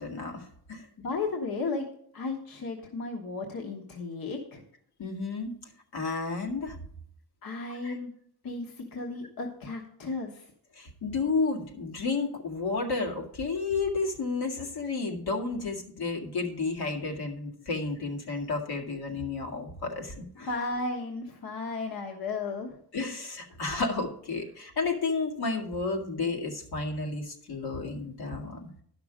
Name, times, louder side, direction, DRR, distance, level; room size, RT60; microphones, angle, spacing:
voice 1, 0.0-0.9 5.0-5.5 5.9-6.8 7.8-8.0 10.7-20.5 22.9-28.7, left 3 dB, 85° left, 1 dB, 2.0 m, -32 dB
voice 2, 1.0-1.9 2.1-4.6 7.4-8.1 8.4-10.5 20.4-22.8, left 3 dB, 65° left, 2 dB, 1.3 m, -34 dB
11.0 x 5.9 x 5.0 m, 0.65 s
cardioid pair, 115°, 38 cm